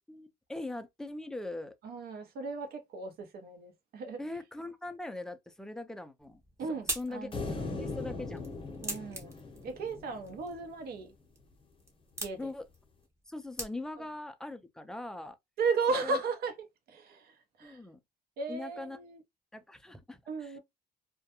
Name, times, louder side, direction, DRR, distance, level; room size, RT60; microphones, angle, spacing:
voice 1, 0.1-1.7 4.2-6.4 6.9-7.3 7.8-8.4 12.4-12.7 13.3-15.4 16.0-16.2 17.6-18.0 18.5-19.0 19.5-20.6, left 2 dB, 5° left, 0.3 m, -41 dB
voice 2, 1.8-4.2 6.6-7.3 8.8-9.3 9.6-11.1 12.2-12.5 15.6-16.5 16.9-17.3 17.6-17.8 18.4-19.2 20.3-20.6, right 4 dB, 65° right, 0.8 m, -35 dB
sound 1, 6.2-14.2, right 1 dB, 15° right, 0.8 m, -44 dB
sound 2, 7.3-10.7, left 3 dB, 30° left, 0.7 m, -39 dB
2.3 x 2.1 x 2.8 m
cardioid pair, 110°, 17 cm